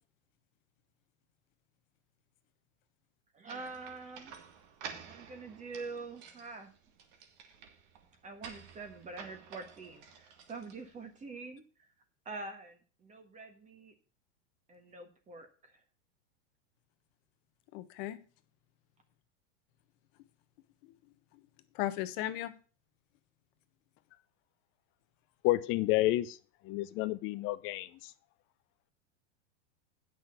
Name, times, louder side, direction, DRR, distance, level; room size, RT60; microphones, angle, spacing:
voice 1, 3.3-4.4 5.0-6.7 8.2-11.6 12.2-13.9 14.7-15.8, right 3 dB, 20° right, 5 dB, 1.5 m, -45 dB
sound 1, 3.5-11.1, right 7 dB, 50° right, 2.1 m, -51 dB
voice 2, 17.7-18.2 20.8-20.9 21.7-22.5, left 14 dB, 50° left, 11 dB, 1.2 m, -36 dB
voice 3, 25.4-26.4 26.6-28.1, left 16 dB, 35° left, 13 dB, 0.6 m, -30 dB
9.2 x 6.2 x 6.8 m, 0.37 s
hypercardioid pair, 125°, 36 cm